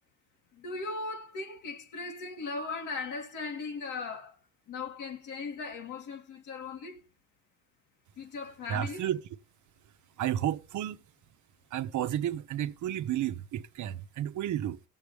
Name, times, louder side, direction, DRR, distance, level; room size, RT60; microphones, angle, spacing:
voice 1, 0.5-4.4 4.7-7.0 8.2-9.1, left 4 dB, 80° left, 2.6 m, -38 dB
voice 2, 8.7-9.2 10.2-11.0 11.7-14.8, right 11 dB, 75° right, 0.9 m, -32 dB
18.5 x 7.3 x 3.4 m
cardioid pair, 90°, 30 cm